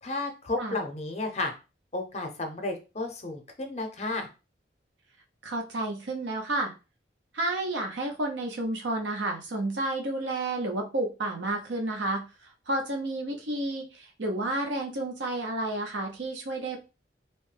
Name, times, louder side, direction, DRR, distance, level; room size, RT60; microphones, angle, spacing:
voice 1, 0.0-1.5 1.9-4.3, left 2 dB, 35° left, 4 dB, 0.6 m, -32 dB
voice 2, 5.4-6.7 7.3-16.8, right 2 dB, 80° right, 2 dB, 0.7 m, -31 dB
2.8 x 2.1 x 3.2 m, 0.30 s
head